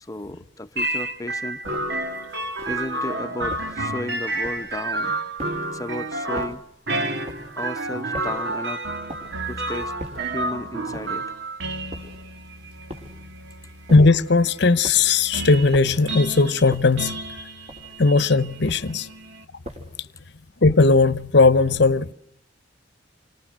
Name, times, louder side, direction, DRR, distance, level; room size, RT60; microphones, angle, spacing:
voice 1, 0.0-1.6 2.7-5.3 5.7-6.6 7.6-8.8 9.5-11.2, left 1 dB, 20° left, 0.9 m, -34 dB
sound 1, 0.8-19.4, right 2 dB, 65° right, 2.3 m, -30 dB
sound 2, 1.6-2.0 2.6-3.0 3.5-3.9 4.4-4.8 5.4-5.8 6.3-6.7 7.3-7.6 8.1-8.5 9.1-9.5 10.0-10.4 10.9-11.3 11.9-12.3 12.9-13.3 13.9-14.3 14.8-15.2 15.7-16.1 16.7-17.1 17.7-18.1 18.7-19.1 19.7-20.1, equal, 35° right, 4.0 m, -40 dB
voice 2, 13.9-17.2 18.0-19.1 20.0-20.1 20.6-22.1, left 3 dB, 65° left, 0.9 m, -17 dB
29.0 x 25.5 x 6.4 m
head